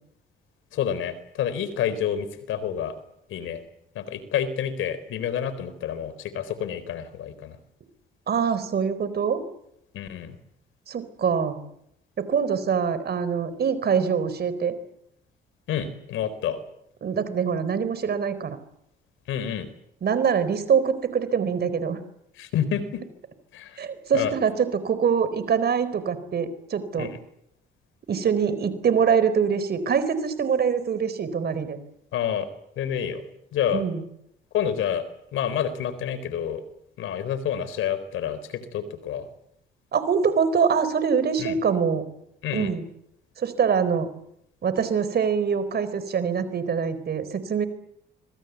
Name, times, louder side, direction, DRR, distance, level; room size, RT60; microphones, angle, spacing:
voice 1, 0.7-2.9 3.3-3.6 3.9-7.6 9.9-10.4 15.7-16.6 19.3-19.7 22.4-23.0 23.5-23.8 24.1-24.3 27.0-27.1 32.1-32.4 32.8-33.2 33.5-33.8 34.5-35.1 35.3-36.6 37.0-39.3 41.4-41.6 42.4-42.7, left 9 dB, 80° left, 14 dB, 4.0 m, -28 dB
voice 2, 8.3-9.4 10.9-11.6 12.2-14.7 17.0-18.6 20.0-22.0 23.8-27.1 28.1-31.8 33.7-34.0 39.9-42.0 42.5-42.8 43.4-44.1 44.6-47.7, right 6 dB, 55° right, 13 dB, 4.3 m, -24 dB
26.0 x 23.5 x 8.3 m, 0.76 s
cardioid pair, 90°, 20 cm